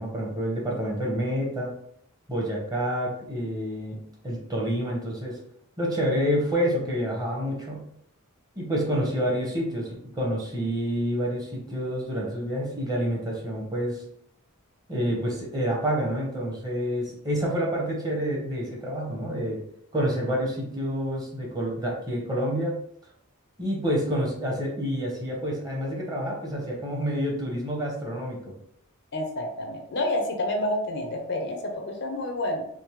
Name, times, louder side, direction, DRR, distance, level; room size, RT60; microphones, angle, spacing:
voice 1, 0.0-1.7 2.3-4.0 4.2-5.4 5.8-7.8 8.5-14.0 14.9-19.6 19.9-22.7 23.6-28.5, equal, 15° right, -2 dB, 1.0 m, -28 dB
voice 2, 29.1-32.7, left 1 dB, 55° left, 3 dB, 0.6 m, -29 dB
3.6 x 2.6 x 3.0 m, 0.69 s
head